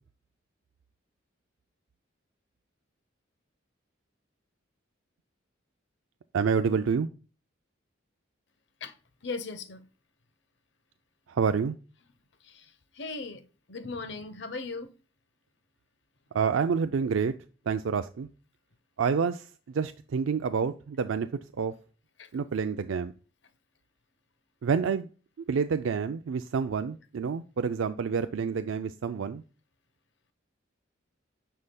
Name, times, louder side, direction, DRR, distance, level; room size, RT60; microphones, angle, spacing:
voice 1, 6.3-7.1 11.3-11.7 16.3-17.3 17.7-18.3 19.0-21.3 21.6-21.7 22.3-23.1 24.6-25.1 25.5-29.4, right 6 dB, 90° right, 0.4 m, -28 dB
voice 2, 9.2-9.8 12.5-12.7 13.0-13.4 13.7-14.9 22.2-22.3, left 3 dB, 65° left, 0.9 m, -37 dB
9.7 x 5.6 x 2.2 m
head